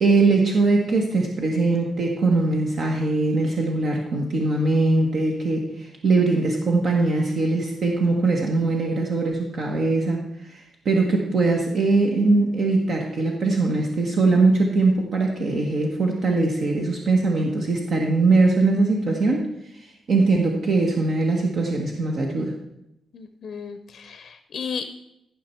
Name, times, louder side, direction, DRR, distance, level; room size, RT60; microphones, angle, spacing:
voice 1, 0.0-22.5, right 3 dB, 55° right, 0 dB, 1.3 m, -21 dB
voice 2, 23.1-24.8, left 6 dB, 55° left, 9 dB, 0.6 m, -34 dB
15.5 x 5.7 x 4.5 m, 0.84 s
cardioid pair, 130°, 0 cm